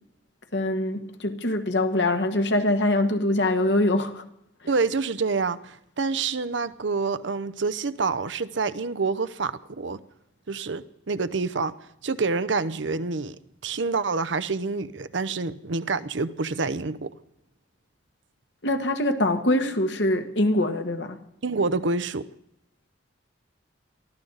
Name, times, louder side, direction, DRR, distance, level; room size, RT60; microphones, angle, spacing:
voice 1, 0.5-4.2 18.6-21.2, left 1 dB, 65° left, 1.6 m, -23 dB
voice 2, 4.7-10.0 10.5-11.7 12.0-13.4 13.6-17.1 21.4-22.3, right 4 dB, 75° right, 0.8 m, -27 dB
23.5 x 15.0 x 4.0 m
head